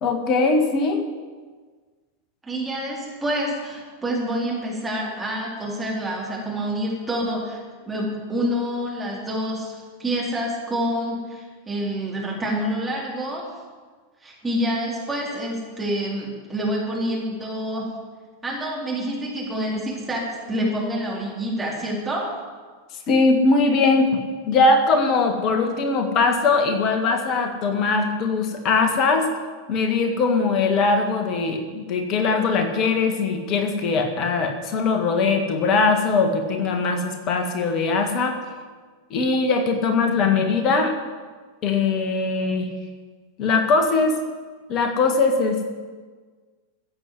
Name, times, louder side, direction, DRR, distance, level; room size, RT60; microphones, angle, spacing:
voice 1, 0.0-1.1 23.1-24.2 24.4-29.3 29.7-38.4 39.1-40.9 41.6-42.7 43.4-44.2 44.7-45.6, left 4 dB, 35° left, 4 dB, 1.8 m, -21 dB
voice 2, 2.4-13.5 14.2-17.9 18.4-22.2, equal, 10° right, -5 dB, 4.2 m, -27 dB
15.0 x 7.8 x 7.8 m, 1.5 s
figure-of-eight pair, 90°, 0 cm